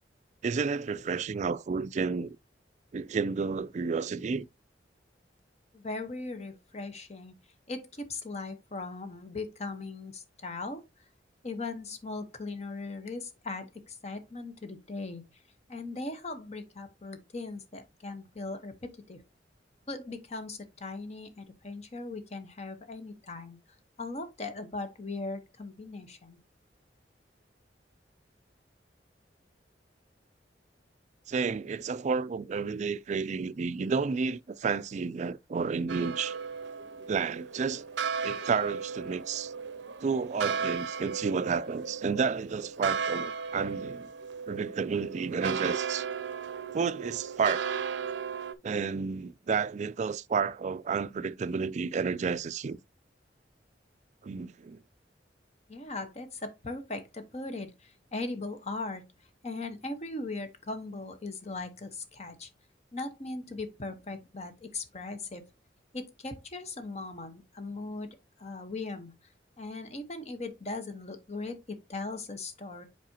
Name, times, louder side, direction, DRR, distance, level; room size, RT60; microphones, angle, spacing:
voice 1, 0.4-2.4 2.9-4.5 31.3-36.4 37.1-37.8 38.2-39.5 40.0-44.1 44.5-46.0 46.7-47.6 48.6-52.8 54.2-54.8, right 5 dB, 40° right, 0.3 m, -31 dB
voice 2, 5.7-7.3 7.7-10.8 11.4-15.2 15.7-19.2 19.9-23.6 24.0-26.4 55.7-59.0 59.4-62.5 62.9-65.5 65.9-68.1 68.4-69.1 69.6-72.9, left 3 dB, 40° left, 1.0 m, -39 dB
sound 1, 35.9-48.5, right 6 dB, 90° right, 0.5 m, -35 dB
7.5 x 4.8 x 2.8 m
head